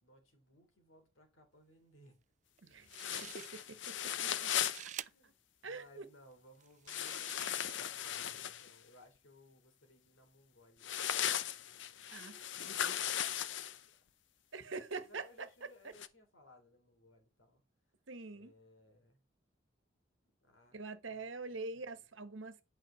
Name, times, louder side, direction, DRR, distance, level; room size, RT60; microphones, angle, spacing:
voice 1, 0.0-2.2 3.2-3.4 4.3-5.3 5.6-11.3 12.1-14.1 15.0-17.6 18.3-19.2 20.2-20.8 21.1-22.1, left 1 dB, 85° left, 3.3 m, -64 dB
sound 1, 2.6-2.7 2.9-3.9 4.2-5.1 5.8-5.9 6.6-8.1, right 11 dB, 35° right, 0.3 m, -50 dB
sound 2, 2.9-4.9 6.9-8.7 10.8-13.8 16.0-16.1, left 10 dB, 70° left, 0.6 m, -37 dB
voice 2, 5.6-6.0 12.1-13.0 14.5-15.5 18.1-18.5 20.7-22.6, right 3 dB, 80° right, 1.2 m, -44 dB
9.0 x 5.7 x 4.4 m
head